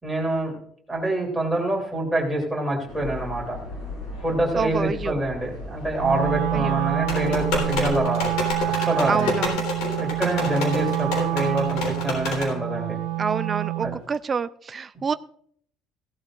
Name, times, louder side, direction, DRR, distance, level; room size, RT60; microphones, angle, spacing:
voice 1, 0.0-0.5 0.9-3.6 4.2-8.3 8.7-9.3 10.0-13.0 13.8-13.9, right 1 dB, ahead, -3 dB, 3.1 m, -26 dB
sound 1, 2.9-8.0, left 2 dB, 50° left, 5.7 m, -36 dB
voice 2, 4.6-5.2 6.5-6.8 9.1-9.6 13.2-15.1, right 5 dB, 20° right, 12 dB, 0.3 m, -27 dB
Wind instrument woodwind instrument, 6.0-14.0, right 16 dB, 75° right, 0.5 m, -27 dB
sound 2, 7.1-12.5, left 3 dB, 85° left, 3.8 m, -29 dB
16.5 x 11.5 x 2.5 m, 0.63 s
cardioid pair, 165°, 0 cm